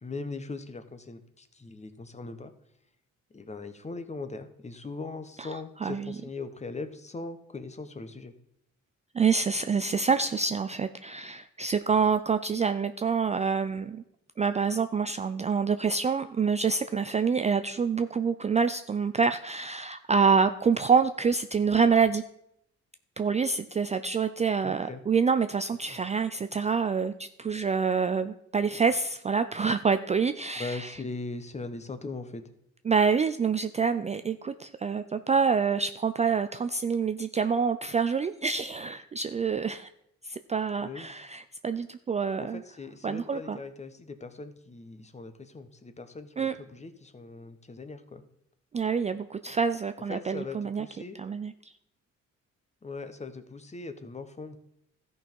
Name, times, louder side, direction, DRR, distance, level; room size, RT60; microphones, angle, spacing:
voice 1, 0.0-2.5 3.3-8.3 24.6-25.0 25.9-26.0 30.6-32.4 40.8-41.1 42.4-48.2 50.1-51.2 52.8-54.6, left 3 dB, 20° left, 10 dB, 1.0 m, -40 dB
voice 2, 5.8-6.1 9.1-14.0 14.4-22.2 23.2-30.9 32.9-39.9 40.2-42.6 43.0-43.6 46.4-46.5 48.7-50.8 51.2-51.5, right 5 dB, 25° right, 10 dB, 0.4 m, -27 dB
13.5 x 5.5 x 4.6 m, 0.78 s
cardioid pair, 90°, 30 cm